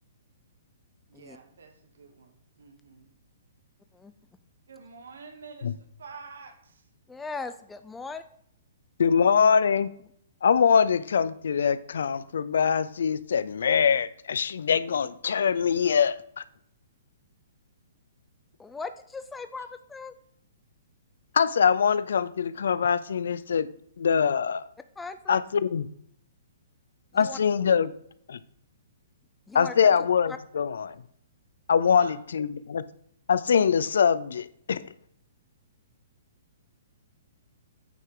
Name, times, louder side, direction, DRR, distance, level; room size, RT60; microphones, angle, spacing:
voice 1, 1.1-3.1 4.7-5.7 6.0-6.9 31.9-32.2, right 5 dB, 85° right, 6 dB, 1.3 m, -47 dB
voice 2, 7.1-8.2 18.6-20.1 25.0-25.4 27.1-27.4 29.5-29.9 30.3-30.4, left 4 dB, 5° left, 9 dB, 0.4 m, -39 dB
voice 3, 9.0-9.9 10.4-16.2 21.3-23.7 24.0-24.6 25.3-25.9 27.1-27.9 28.3-28.4 29.5-31.0 31.7-32.8 33.3-34.8, left 7 dB, 75° left, 16 dB, 0.5 m, -23 dB
9.1 x 5.6 x 3.8 m, 0.68 s
hypercardioid pair, 160°, 0 cm